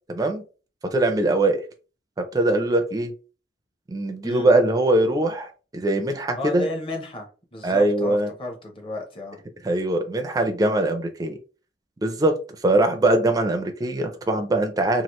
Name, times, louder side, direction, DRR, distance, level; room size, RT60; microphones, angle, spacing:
voice 1, 0.1-0.4 0.9-1.6 2.2-3.1 3.9-6.7 7.6-8.3 9.6-11.4 12.0-12.4 12.6-15.0, right 2 dB, 20° right, 0.4 m, -22 dB
voice 2, 6.3-9.4, left 2 dB, 30° left, 0.8 m, -33 dB
2.9 x 2.4 x 3.0 m
head